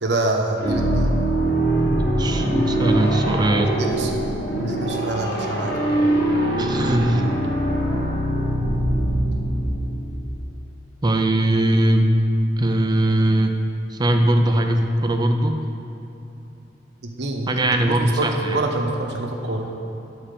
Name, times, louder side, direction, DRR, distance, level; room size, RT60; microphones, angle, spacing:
voice 1, 0.0-1.1 3.7-4.1 4.6-6.0 17.0-19.7, right 2 dB, 65° right, 2 dB, 1.1 m, -26 dB
sound 1, 0.6-10.3, right 1 dB, 60° left, 1.4 m, -22 dB
voice 2, 2.2-3.7 6.6-7.3 11.0-12.2 12.6-13.5 13.9-15.6 17.5-18.6, right 1 dB, 25° right, 4 dB, 0.5 m, -20 dB
11.0 x 4.3 x 6.7 m, 2.9 s
head